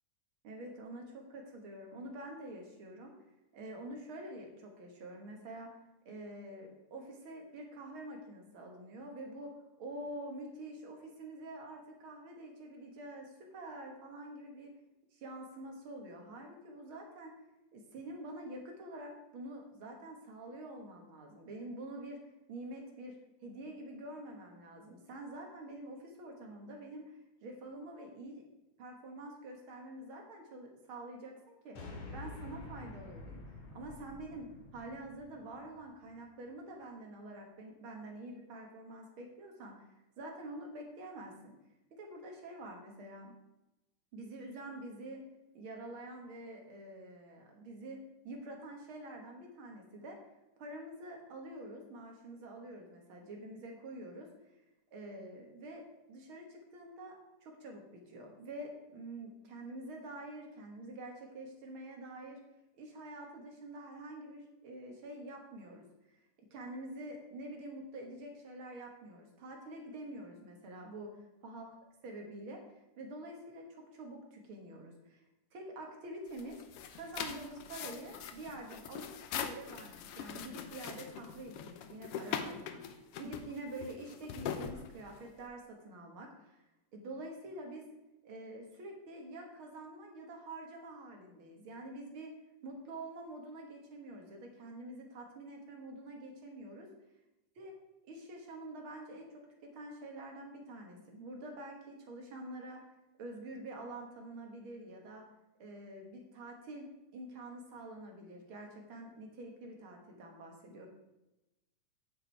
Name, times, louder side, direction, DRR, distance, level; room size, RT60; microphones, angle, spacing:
voice 1, 0.4-1.0 1.3-3.1 3.5-5.8 6.1-14.7 15.1-17.3 17.7-22.2 22.5-27.1 27.4-28.4 28.8-31.8 32.1-39.9 40.2-41.5 41.9-43.4 44.1-45.2 45.5-50.2 50.6-54.3 54.9-57.1 57.4-62.4 62.8-65.8 66.5-71.1 71.4-71.7 72.0-75.2 75.5-76.6 76.9-86.6 86.9-87.8 88.2-92.3 92.6-96.9 97.6-97.7 98.1-102.8 103.2-105.3 105.6-106.9 107.1-110.9, right 1 dB, 50° right, 2 dB, 1.9 m, -47 dB
sound 1, 31.8-36.2, left 2 dB, 70° left, 3.2 m, -49 dB
sound 2, 76.3-85.4, left 8 dB, 90° left, 1.3 m, -42 dB
8.9 x 6.9 x 4.6 m, 0.96 s
omnidirectional pair, 3.4 m